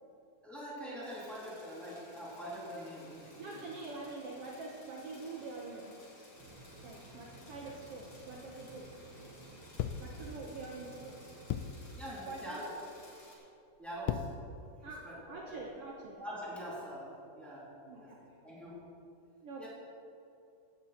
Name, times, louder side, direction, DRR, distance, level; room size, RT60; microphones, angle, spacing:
voice 1, 0.4-3.7 11.9-12.8 13.8-14.4 15.0-15.7 16.2-18.1 18.4-19.0 19.6-19.7, equal, ahead, -7 dB, 2.5 m, -44 dB
sound 1, 1.0-13.4, left 2 dB, 45° left, 3.5 m, -57 dB
voice 2, 3.4-6.3 6.8-8.9 10.0-11.4 12.3-12.6 14.8-16.2 17.9-18.2 19.4-19.7, right 3 dB, 60° right, -1 dB, 1.7 m, -45 dB
sound 2, 6.3-11.5, right 2 dB, 25° right, 2.9 m, -55 dB
sound 3, 9.8-10.2 11.5-11.8 12.7-13.0 13.8-14.5 15.1-16.0, left 10 dB, 80° left, 1.4 m, -37 dB
16.5 x 8.6 x 4.3 m, 2.6 s
omnidirectional pair, 3.4 m